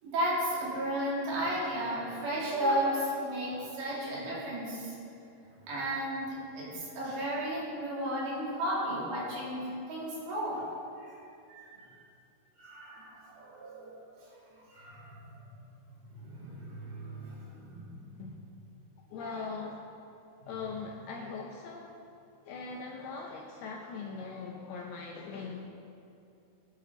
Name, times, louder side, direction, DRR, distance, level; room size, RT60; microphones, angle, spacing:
voice 1, 0.0-4.9 5.7-10.7 11.0-11.1 11.5-11.9 12.6-14.3 14.7-15.3 16.1-18.2 20.4-20.5, equal, 70° right, -6 dB, 5.0 m, -34 dB
voice 2, 19.0-19.8 20.5-22.0 22.4-25.6, left 4 dB, 75° left, 0 dB, 2.4 m, -40 dB
19.5 x 10.5 x 4.0 m, 2.6 s
omnidirectional pair, 5.3 m